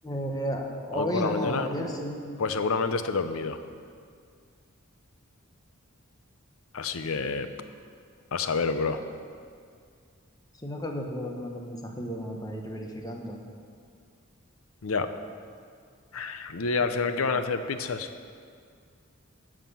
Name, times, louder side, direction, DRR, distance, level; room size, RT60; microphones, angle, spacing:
voice 1, 0.0-2.3 8.9-9.0 10.6-13.4 16.8-17.3, equal, 20° left, 1 dB, 1.2 m, -33 dB
voice 2, 0.9-1.7 2.4-3.6 6.7-7.5 8.3-9.0 14.8-15.1 16.1-18.1, left 4 dB, 85° left, 10 dB, 0.7 m, -28 dB
13.5 x 7.4 x 5.6 m, 2.2 s
head